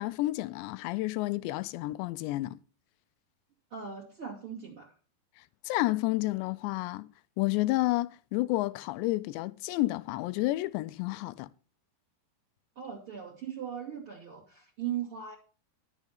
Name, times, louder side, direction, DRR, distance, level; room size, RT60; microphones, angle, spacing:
voice 1, 0.0-2.6 5.7-7.1 7.4-11.5, left 18 dB, 85° left, 2.9 m, -30 dB
voice 2, 3.7-4.9 12.8-15.4, right 9 dB, 40° right, 2.4 m, -38 dB
12.0 x 7.2 x 5.7 m
omnidirectional pair, 5.0 m